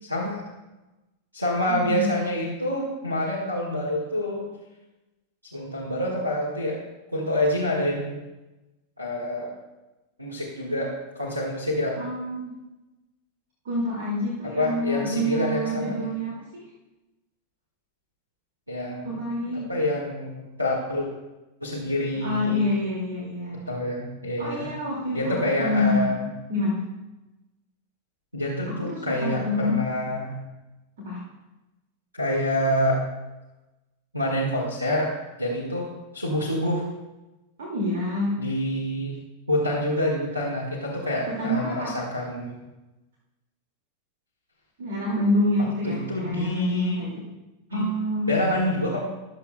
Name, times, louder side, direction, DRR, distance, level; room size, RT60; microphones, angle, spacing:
voice 1, 0.0-0.4 1.3-4.5 5.5-6.8 7.1-8.2 9.0-9.5 10.2-12.0 14.4-16.1 18.7-19.2 19.5-21.1 21.6-22.6 23.7-24.7 25.1-26.3 28.3-30.4 32.1-33.0 34.1-35.1 35.4-35.9 36.1-36.9 38.4-39.2 39.5-42.6 45.8-47.0 47.7-47.9 48.3-49.0, left 1 dB, 85° right, -3 dB, 1.6 m, -27 dB
voice 2, 1.7-2.1 12.0-12.6 13.6-16.7 19.0-19.7 22.1-23.7 24.4-26.1 26.5-26.9 28.7-29.8 31.0-31.2 37.6-38.3 41.3-41.9 44.8-47.2 47.7-48.3, left 1 dB, 60° right, -3 dB, 2.2 m, -27 dB
20.5 x 6.9 x 2.2 m, 1.0 s
figure-of-eight pair, 90°, 0 cm